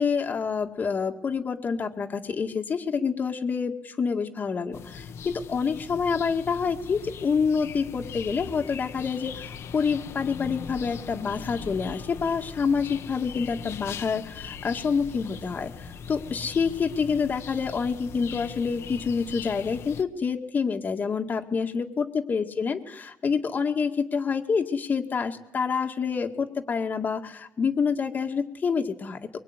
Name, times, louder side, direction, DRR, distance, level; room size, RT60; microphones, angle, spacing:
voice 1, 0.0-29.2, left 5 dB, 35° left, 4 dB, 2.1 m, -27 dB
sound 1, 4.7-20.0, left 6 dB, 60° left, 1.7 m, -40 dB
23.5 x 23.5 x 9.8 m, 0.81 s
cardioid pair, 130°, 5 cm